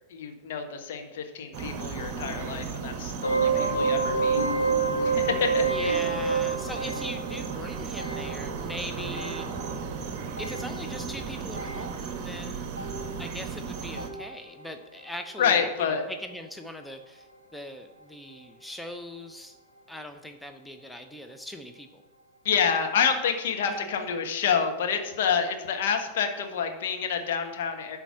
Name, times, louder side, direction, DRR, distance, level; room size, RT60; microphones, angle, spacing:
voice 1, 0.1-4.4 5.0-6.0 15.4-16.0 22.4-28.0, left 7 dB, 55° left, 4 dB, 1.2 m, -28 dB
sound 1, 1.5-14.1, right 5 dB, 40° right, 1.0 m, -35 dB
sound 2, 3.2-14.7 14.9-15.4 16.0-16.2 16.5-16.6 17.2-17.3, right 4 dB, 90° left, 1.2 m, -30 dB
voice 2, 3.5-4.6 5.7-9.5 10.4-12.7 13.2-19.6 19.9-22.0 23.7-23.8, left 1 dB, ahead, 6 dB, 0.7 m, -41 dB
11.5 x 4.4 x 5.8 m, 1.0 s
figure-of-eight pair, 90°, 0 cm